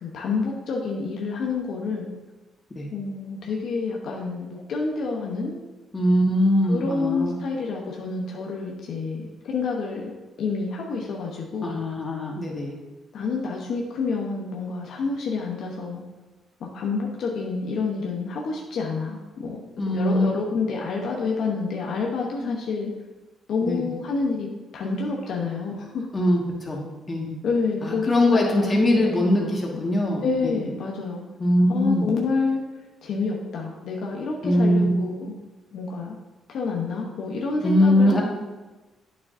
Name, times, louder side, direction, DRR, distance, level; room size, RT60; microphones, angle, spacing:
voice 1, 0.0-2.1 2.9-5.6 6.7-10.1 10.4-11.7 13.1-16.0 16.6-19.6 19.9-22.9 23.5-26.1 27.4-28.7 28.9-29.0 29.4-29.9 30.2-31.2 31.7-32.6 33.0-35.3 35.7-36.2 36.5-38.2, left 4 dB, 70° left, -1 dB, 1.0 m, -28 dB
voice 2, 5.9-7.4 11.6-12.7 19.8-20.3 22.4-22.5 23.7-23.8 26.1-27.3 27.8-30.2 31.4-32.1 34.4-35.0 37.6-38.2, left 1 dB, 25° left, -2 dB, 1.8 m, -21 dB
8.6 x 6.5 x 2.7 m, 1.2 s
cardioid pair, 90°, 0 cm